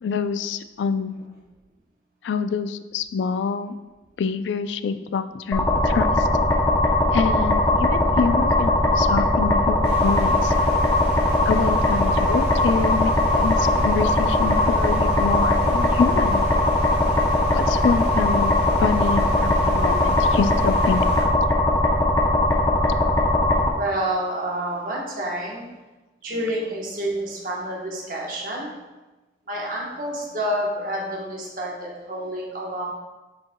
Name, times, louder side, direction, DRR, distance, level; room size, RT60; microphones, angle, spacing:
voice 1, 0.0-1.1 2.2-3.8 4.2-6.3 7.1-10.5 11.5-16.4 17.5-18.5 18.8-21.3, left 5 dB, 85° left, 11 dB, 0.3 m, -26 dB
sound 1, 5.5-23.7, left 1 dB, 15° left, 0.6 m, -20 dB
sound 2, 9.8-21.2, right 1 dB, 70° right, 1.5 m, -36 dB
voice 2, 23.8-25.7 26.2-28.7 29.5-32.9, right 1 dB, 50° right, -3 dB, 1.0 m, -28 dB
7.9 x 5.3 x 2.2 m, 1.1 s
head